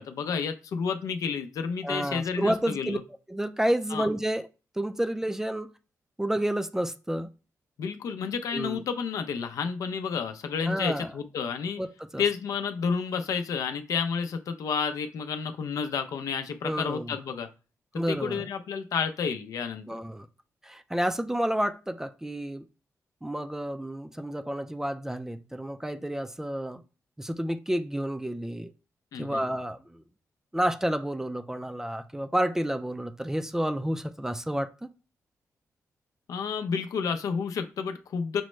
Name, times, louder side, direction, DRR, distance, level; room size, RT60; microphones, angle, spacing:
voice 1, 0.0-3.0 3.9-4.1 7.8-11.8 12.2-17.5 18.1-19.9 29.1-29.4 36.3-38.4, left 6 dB, 80° left, 0.5 m, -30 dB
voice 2, 1.8-3.0 3.3-4.5 4.8-5.7 6.2-7.3 8.5-8.8 10.7-11.1 11.8-11.9 12.1-12.2 16.6-17.2 17.9-18.5 19.9-20.3 20.6-22.6 23.2-26.8 27.2-28.7 29.2-30.0 30.5-34.9, right 1 dB, 10° right, 0.3 m, -30 dB
6.0 x 2.1 x 3.1 m
cardioid pair, 110°, 6 cm